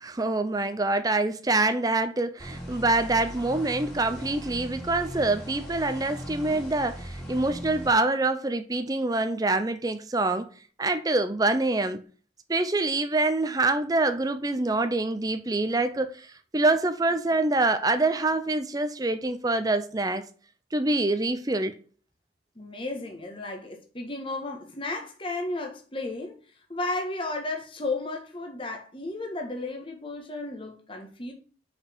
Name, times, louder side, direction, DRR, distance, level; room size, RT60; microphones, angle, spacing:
voice 1, 0.0-10.5 10.8-12.0 12.5-16.1 16.5-20.3 20.7-21.8, right 2 dB, 20° right, 0.5 m, -25 dB
sound 1, 2.4-7.9, equal, 5° left, 2.6 m, -39 dB
voice 2, 22.5-26.4 26.7-31.3, left 2 dB, 25° left, 1.4 m, -33 dB
5.8 x 5.1 x 4.4 m
head